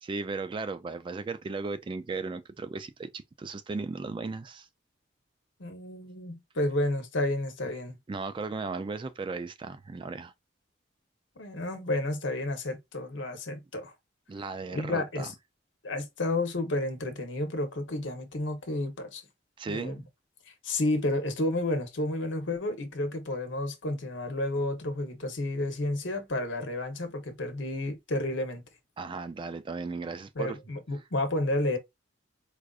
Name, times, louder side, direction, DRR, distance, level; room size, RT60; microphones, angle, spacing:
voice 1, 0.0-4.7 8.1-10.3 14.3-15.3 19.6-20.1 29.0-30.6, right 4 dB, 25° right, 0.3 m, -36 dB
voice 2, 5.6-8.0 11.4-13.9 14.7-15.3 15.8-19.2 19.7-20.0 20.6-28.6 30.4-31.8, left 1 dB, 75° left, 1.0 m, -31 dB
4.7 x 2.5 x 2.4 m
head